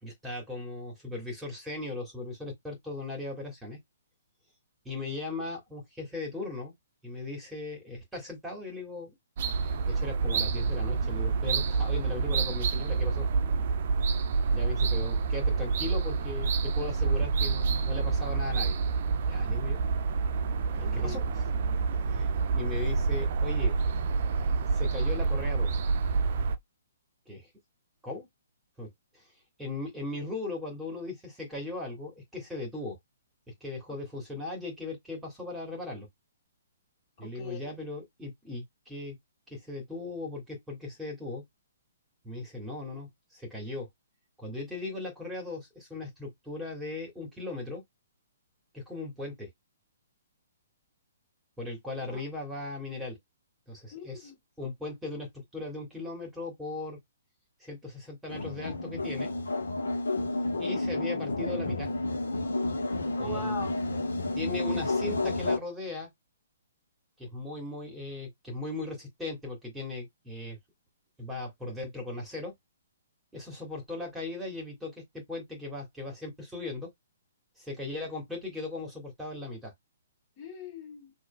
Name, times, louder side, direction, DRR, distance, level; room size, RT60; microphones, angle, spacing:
voice 1, 0.0-3.8 4.8-6.7 7.0-9.1 9.6-13.3 14.5-18.8 19.2-19.8 20.7-21.4 22.1-22.3 22.5-23.8 24.7-25.7 26.3-26.4 27.3-27.5 28.0-28.3 28.8-28.9 29.6-33.0 33.6-36.1 37.2-39.2 39.5-41.4 42.2-43.9 44.4-47.8 48.7-49.5 51.6-53.2 53.7-54.3 54.6-57.0 57.6-59.3 60.6-61.9 63.2-63.5 64.4-66.1 67.2-70.6 71.2-72.5 73.3-76.9 77.6-79.7, left 2 dB, 5° right, 2.4 m, -38 dB
sound 1, 9.4-26.6, right 4 dB, 45° right, 0.7 m, -28 dB
voice 2, 20.8-21.3 33.9-34.0 37.2-37.7 52.0-52.2 53.9-54.4 63.2-63.9 80.4-81.1, left 3 dB, 30° left, 2.4 m, -41 dB
sound 2, 58.3-65.6, left 2 dB, 65° left, 1.3 m, -30 dB
6.2 x 2.7 x 2.3 m
figure-of-eight pair, 125°, 0 cm